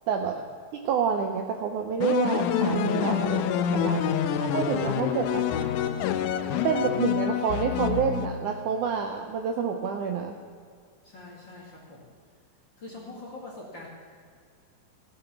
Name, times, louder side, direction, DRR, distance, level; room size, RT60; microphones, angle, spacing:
voice 1, 0.1-0.4 0.9-3.4 3.7-4.2 4.5-5.4 6.6-10.3, right 7 dB, 75° right, 4 dB, 1.9 m, -28 dB
sound 1, 2.0-8.7, left 8 dB, 90° left, 1.8 m, -27 dB
voice 2, 11.0-12.1 12.8-13.9, left 2 dB, 40° left, -3 dB, 1.9 m, -44 dB
15.5 x 9.9 x 5.9 m, 2.1 s
omnidirectional pair, 4.4 m